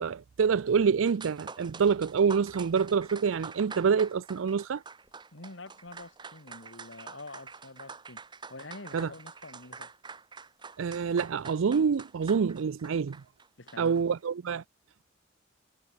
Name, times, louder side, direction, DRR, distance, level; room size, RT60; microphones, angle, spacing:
voice 1, 0.0-4.8 8.9-9.1 10.8-13.2 13.8-14.6, right 6 dB, 90° right, 0.4 m, -26 dB
sound 1, 1.1-14.0, right 5 dB, 25° right, 1.0 m, -46 dB
voice 2, 5.3-8.2 8.5-9.9 13.6-14.1, left 2 dB, 70° left, 2.4 m, -46 dB
head